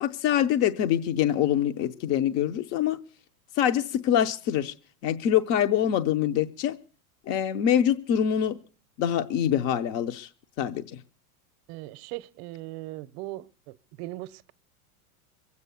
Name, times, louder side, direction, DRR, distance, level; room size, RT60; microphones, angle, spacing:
voice 1, 0.0-3.0 3.5-4.7 5.0-6.8 7.3-8.6 9.0-10.3 10.6-11.0, left 10 dB, 35° left, 0.7 m, -25 dB
voice 2, 11.7-14.5, right 17 dB, 45° right, 0.7 m, -39 dB
22.5 x 8.3 x 6.9 m
supercardioid pair, 155°, 45 cm